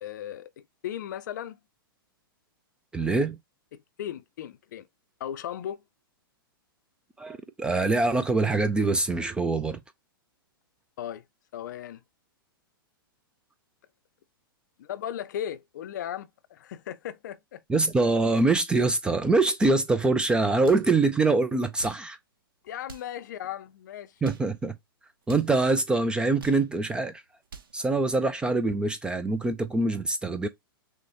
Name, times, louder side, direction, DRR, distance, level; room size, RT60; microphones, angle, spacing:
voice 1, 0.0-1.6 3.0-3.2 3.7-4.9 5.2-5.8 11.0-11.2 11.5-12.0 14.8-17.6 22.6-24.2, left 10 dB, 50° left, 0.5 m, -37 dB
voice 2, 2.9-3.4 7.2-9.8 17.7-22.2 24.2-24.7 25.3-27.2 27.7-30.5, right 3 dB, 5° right, 0.3 m, -24 dB
sound 1, 19.5-19.9 20.6-20.9 21.6-22.1 22.8-23.2 24.0-24.5 25.2-25.5 26.2-26.7 27.3-27.8, right 5 dB, 65° right, 0.8 m, -46 dB
6.0 x 2.1 x 2.8 m
figure-of-eight pair, 105°, 12 cm